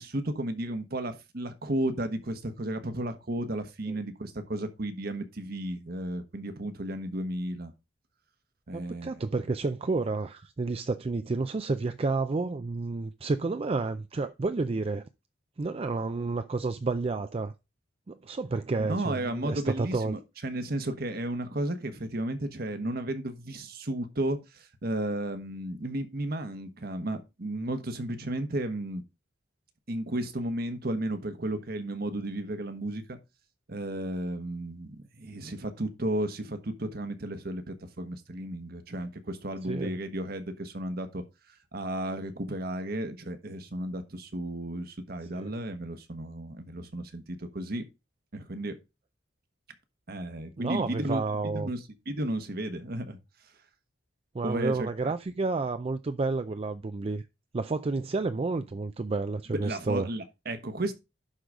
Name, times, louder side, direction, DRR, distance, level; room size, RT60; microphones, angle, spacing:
voice 1, 0.0-7.7 8.7-9.1 18.8-29.0 29.9-33.2 33.7-41.2 41.7-47.8 48.3-48.7 50.1-51.8 52.1-53.2 54.4-54.9 59.5-60.9, right 1 dB, 55° right, 1.2 m, -33 dB
voice 2, 8.7-15.0 15.6-17.5 18.1-20.1 39.7-40.0 45.4-45.5 50.6-51.7 54.3-57.2 57.5-60.1, right 3 dB, 30° right, 0.4 m, -30 dB
11.5 x 3.9 x 4.9 m
head